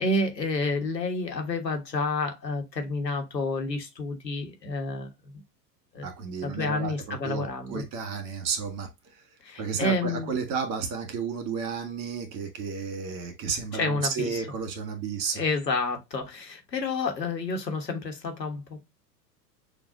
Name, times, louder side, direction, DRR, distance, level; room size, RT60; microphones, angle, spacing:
voice 1, 0.0-5.1 5.9-6.1 6.4-7.8 9.4-10.3 13.7-14.5 15.3-18.8, left 3 dB, 90° left, 1.3 m, -29 dB
voice 2, 6.0-8.9 9.6-15.4, right 5 dB, 40° right, 1.7 m, -32 dB
6.5 x 2.5 x 2.5 m
figure-of-eight pair, 95°, 48 cm